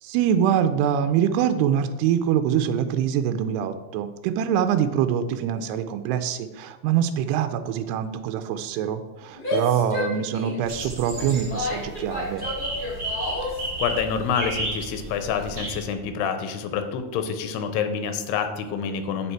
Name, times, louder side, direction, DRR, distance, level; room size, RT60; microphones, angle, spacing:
voice 1, 0.0-12.5, right 9 dB, 85° right, 8 dB, 2.5 m, -24 dB
Female speech woman speaking / Yell, 9.3-13.7, left 2 dB, 20° left, 1.6 m, -31 dB
sound 1, 10.6-15.8, right 2 dB, 60° right, 0.8 m, -33 dB
voice 2, 13.8-19.3, left 7 dB, 80° left, 7 dB, 2.6 m, -27 dB
8.5 x 6.9 x 4.5 m, 1.3 s
omnidirectional pair, 5.0 m